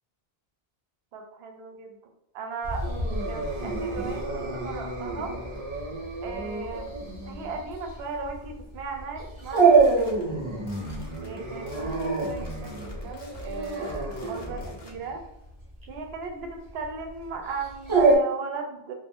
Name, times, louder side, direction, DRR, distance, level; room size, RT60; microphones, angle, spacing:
voice 1, 1.1-2.0 2.3-2.9 3.3-5.4 6.2-6.9 7.3-10.5 11.2-15.2 15.9-18.9, right 4 dB, 75° right, 3 dB, 0.8 m, -37 dB
Dog, 2.6-18.2, right 4 dB, 35° right, 0.6 m, -27 dB
sound 1, 9.4-15.0, left 1 dB, 35° left, 0.4 m, -42 dB
2.5 x 2.1 x 3.4 m, 0.88 s
omnidirectional pair, 1.1 m